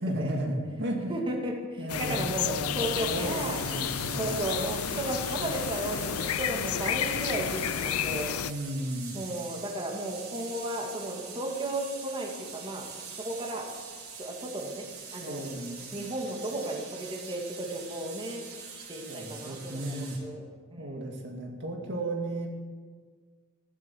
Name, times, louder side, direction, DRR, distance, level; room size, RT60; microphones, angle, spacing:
voice 1, 0.0-1.1 1.8-4.4 8.4-9.2 15.2-15.8 19.1-20.2 20.8-22.5, right 1 dB, 55° right, 1 dB, 2.2 m, -34 dB
voice 2, 1.1-2.4 2.7-3.6 4.1-8.4 9.1-13.7 14.1-14.9 15.1-15.4 15.9-20.4 20.7-21.3, right 1 dB, 25° right, 0 dB, 2.4 m, -34 dB
sound 1, 1.9-8.5, left 9 dB, 90° left, 0.5 m, -31 dB
sound 2, 2.8-20.2, right 5 dB, 90° right, 4.1 m, -44 dB
14.5 x 12.5 x 7.2 m, 1.5 s
head